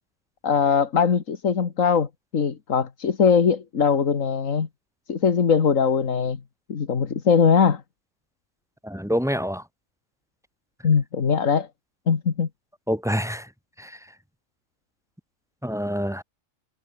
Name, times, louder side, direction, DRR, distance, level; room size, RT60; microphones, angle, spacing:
voice 1, 0.4-4.7 5.1-6.4 6.7-7.8 10.8-11.7 12.1-12.5, left 6 dB, 75° left, 2.0 m, -21 dB
voice 2, 8.8-9.6 12.9-13.5 13.8-14.0 15.6-16.2, equal, ahead, 1.9 m, -26 dB
omnidirectional pair, 1.4 m